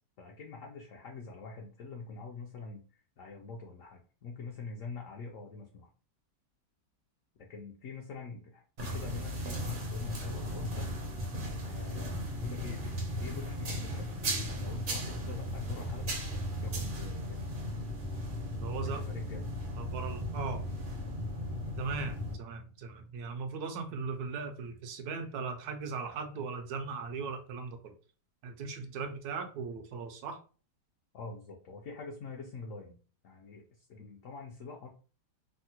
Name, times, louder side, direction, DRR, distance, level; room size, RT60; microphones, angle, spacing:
voice 1, 0.2-2.8 3.2-5.9 7.4-11.0 11.6-12.9 13.2-14.1 14.4-16.2 16.6-17.5 18.8-19.5 31.1-33.0 33.2-34.9, left 4 dB, 75° left, 1 dB, 0.7 m, -45 dB
sound 1, 8.8-22.3, equal, 50° right, 0.6 m, -36 dB
voice 2, 18.6-19.0 19.8-20.7 21.8-27.9 28.4-30.4, right 4 dB, 70° right, 5 dB, 1.0 m, -38 dB
3.5 x 2.1 x 2.7 m, 0.38 s
omnidirectional pair, 1.9 m